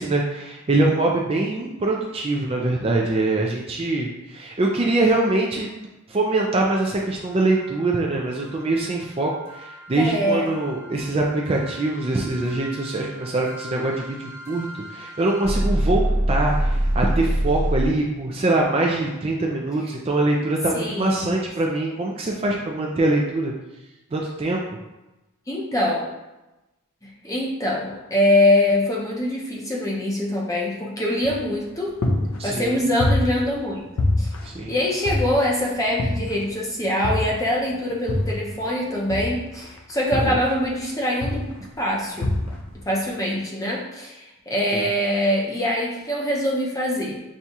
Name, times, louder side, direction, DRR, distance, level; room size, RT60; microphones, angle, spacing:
voice 1, 0.0-5.7 6.1-23.5 24.1-24.6 32.4-32.8 34.4-34.8 40.1-40.4 44.7-44.9, right 2 dB, 25° right, -1 dB, 0.3 m, -23 dB
sound 1, 7.5-17.9, right 1 dB, 60° right, 1.1 m, -27 dB
voice 2, 10.0-10.5 20.7-21.3 25.5-26.1 27.0-32.0 32.4-33.8 34.2-34.3 34.7-41.4 41.8-42.4 42.9-47.2, left 1 dB, 15° left, -3 dB, 0.7 m, -23 dB
sound 2, 31.2-31.7 32.0-33.7 34.0-35.6 36.0-36.5 37.0-38.6 39.1-40.9 41.2-41.7 42.2-42.8, left 1 dB, 70° left, 0.5 m, -26 dB
6.0 x 2.3 x 2.7 m, 1.0 s
head